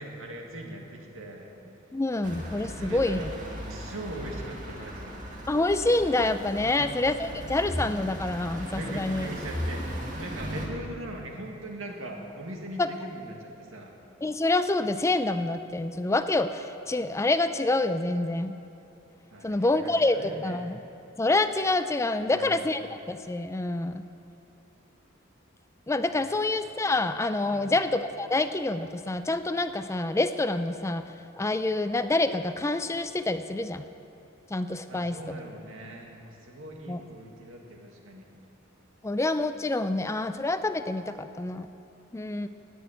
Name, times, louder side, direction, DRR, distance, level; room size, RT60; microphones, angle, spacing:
voice 1, 0.0-1.9 2.6-5.2 6.6-7.0 8.7-13.9 19.3-20.6 22.2-22.6 26.1-26.3 27.4-27.7 34.9-38.3, right 1 dB, 90° right, 1 dB, 2.0 m, -41 dB
voice 2, 1.9-3.2 5.5-9.3 12.8-12.9 14.2-18.6 19.4-20.8 21.2-22.8 23.1-24.0 25.9-31.0 31.4-33.8 34.5-35.2 36.9-37.0 39.0-41.7 42.1-42.5, left 2 dB, 15° left, 11 dB, 0.4 m, -27 dB
sound 1, 2.2-10.7, equal, 40° right, 2.0 m, -37 dB
17.5 x 6.3 x 8.8 m, 2.7 s
head